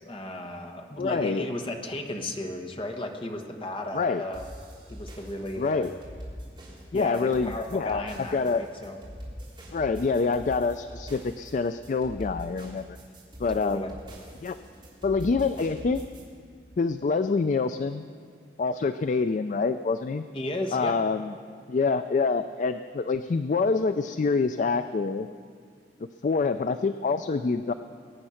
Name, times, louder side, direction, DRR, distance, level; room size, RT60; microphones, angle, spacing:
voice 1, 0.0-4.5 4.9-6.0 6.9-8.9 13.5-13.9 20.3-21.0, left 1 dB, 30° left, 3 dB, 1.3 m, -34 dB
voice 2, 1.0-1.5 3.9-4.2 5.6-5.9 6.9-8.0 8.3-8.6 9.7-13.0 13.4-13.9 14.4-14.6 15.0-16.0 16.8-18.0 18.6-20.2 20.7-21.3 21.7-25.3 26.2-27.7, left 4 dB, 45° left, 10 dB, 0.3 m, -26 dB
sound 1, 4.3-16.2, equal, 25° right, 3.5 m, -43 dB
21.5 x 8.9 x 5.7 m, 2.1 s
head